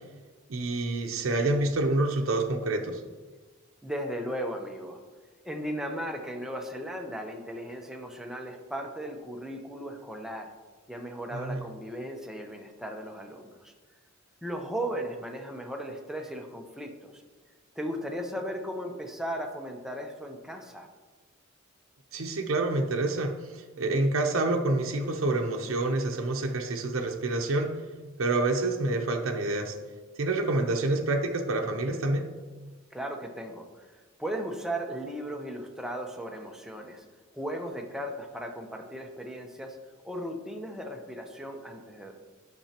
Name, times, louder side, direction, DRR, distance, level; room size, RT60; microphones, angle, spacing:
voice 1, 0.5-3.0 11.3-11.6 22.1-27.8 28.2-29.8 30.2-32.3, right 2 dB, 75° right, 2 dB, 0.6 m, -27 dB
voice 2, 3.8-5.0 5.4-10.5 10.9-13.7 14.4-17.2 17.8-20.9 32.9-33.9 34.2-37.0 37.3-39.8 40.0-42.1, equal, 5° right, 2 dB, 0.7 m, -36 dB
10.5 x 5.9 x 2.9 m, 1.4 s
head